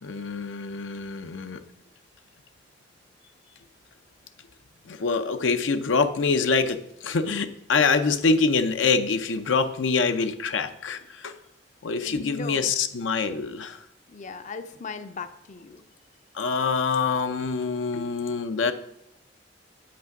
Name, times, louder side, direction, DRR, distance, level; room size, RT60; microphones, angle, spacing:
voice 1, 0.0-1.6 4.9-11.3 11.8-13.8 16.3-18.7, left 4 dB, 90° left, 9 dB, 0.6 m, -25 dB
voice 2, 12.0-12.7 14.1-15.8, left 4 dB, 40° left, 10 dB, 0.5 m, -38 dB
8.1 x 6.0 x 5.9 m, 0.80 s
head